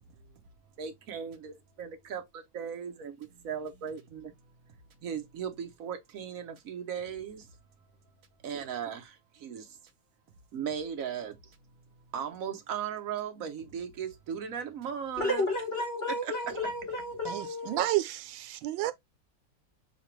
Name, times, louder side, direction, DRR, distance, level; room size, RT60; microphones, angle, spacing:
voice 1, 0.8-4.3 5.0-7.5 8.4-9.8 10.5-11.6 12.1-15.5 16.1-16.6, right 8 dB, 60° right, 1.0 m, -37 dB
voice 2, 15.2-17.9, left 1 dB, 40° left, 1.1 m, -32 dB
voice 3, 17.3-18.9, right 15 dB, 90° right, 1.3 m, -31 dB
5.7 x 2.2 x 3.1 m
omnidirectional pair, 2.0 m